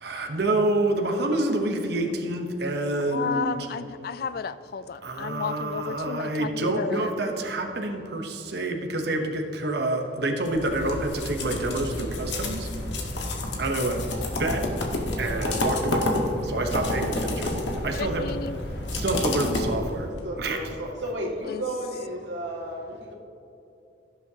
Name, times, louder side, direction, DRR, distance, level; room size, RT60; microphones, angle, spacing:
voice 1, 0.0-3.6 5.0-12.7 13.6-14.0 14.4-14.6 15.2-16.1 16.4-17.6 17.8-18.4 18.9-20.1 20.4-20.7, right 2 dB, 60° right, 3 dB, 0.9 m, -27 dB
voice 2, 3.1-7.1 18.0-18.6 21.4-21.6, left 5 dB, 55° left, 14 dB, 0.3 m, -32 dB
sound 1, 10.5-20.2, left 1 dB, 80° left, 1.5 m, -30 dB
voice 3, 20.2-23.1, right 1 dB, 90° right, -2 dB, 2.1 m, -33 dB
17.0 x 7.0 x 2.8 m, 2.8 s
head